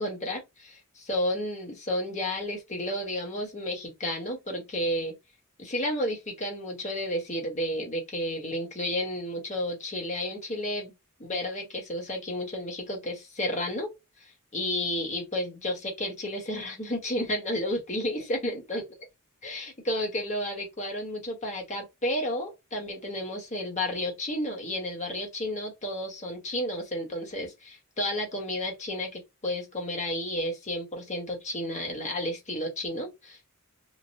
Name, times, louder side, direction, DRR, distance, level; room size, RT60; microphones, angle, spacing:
voice 1, 0.0-5.1 5.6-10.9 11.2-13.9 14.2-18.8 19.4-33.5, left 1 dB, 35° left, 1.1 m, -32 dB
3.1 x 2.1 x 2.7 m
head